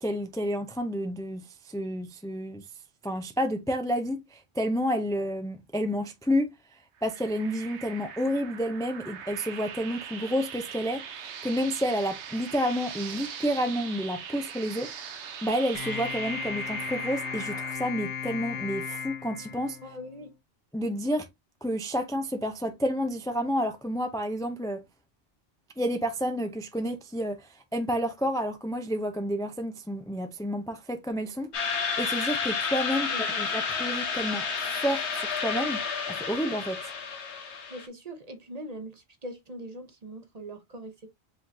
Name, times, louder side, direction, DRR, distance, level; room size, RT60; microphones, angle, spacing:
voice 1, 0.0-2.7 3.0-6.5 7.0-14.9 15.4-19.8 20.7-21.3 21.6-24.8 25.8-35.8 36.1-36.8, equal, 5° left, 0.3 m, -30 dB
sound 1, 7.0-17.7, right 7 dB, 90° right, 1.1 m, -41 dB
sound 2, 15.7-20.2, left 7 dB, 60° left, 0.7 m, -36 dB
voice 2, 19.8-20.3 33.1-33.4 37.7-41.1, right 1 dB, 40° right, 1.0 m, -42 dB
sound 3, 31.5-37.9, left 5 dB, 90° left, 1.3 m, -30 dB
5.1 x 3.8 x 2.6 m
omnidirectional pair, 1.1 m